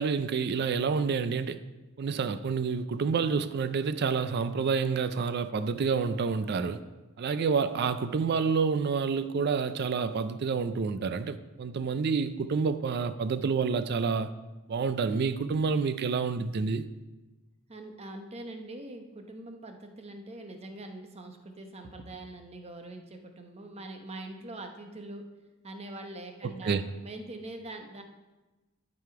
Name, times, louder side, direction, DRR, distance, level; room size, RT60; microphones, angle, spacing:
voice 1, 0.0-1.6 2.0-6.8 7.2-14.3 14.7-16.8 26.4-26.8, right 5 dB, 50° right, 0.4 m, -28 dB
voice 2, 17.7-25.3 25.6-28.0, right 2 dB, 30° right, 0.8 m, -43 dB
11.5 x 5.0 x 4.7 m
head